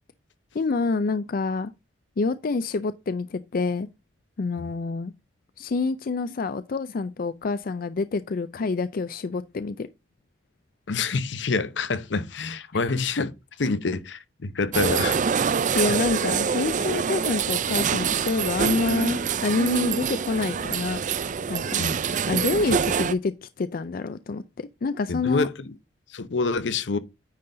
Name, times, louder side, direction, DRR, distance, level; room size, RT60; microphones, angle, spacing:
voice 1, 0.5-1.7 2.2-3.9 4.4-5.1 5.6-9.9 15.7-21.0 21.5-21.8 22.3-25.5, left 3 dB, 50° left, 0.4 m, -27 dB
voice 2, 10.9-13.3 13.6-15.2 21.8-22.0 22.7-22.8 25.1-25.7 26.1-27.0, left 4 dB, 80° left, 0.8 m, -27 dB
sound 1, 14.7-23.1, right 6 dB, 45° right, 0.4 m, -25 dB
9.6 x 3.9 x 3.8 m
head